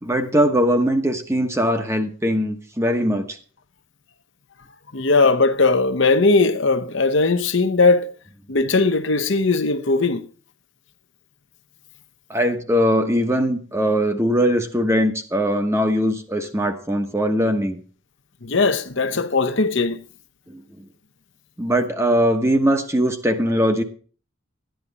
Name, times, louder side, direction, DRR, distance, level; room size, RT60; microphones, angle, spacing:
voice 1, 0.0-3.4 12.3-17.8 20.5-20.8 21.6-23.8, equal, 10° right, 1.1 m, -21 dB
voice 2, 4.9-8.1 8.5-10.3 18.4-20.0, left 3 dB, 55° left, 0.9 m, -19 dB
12.5 x 10.5 x 4.1 m
head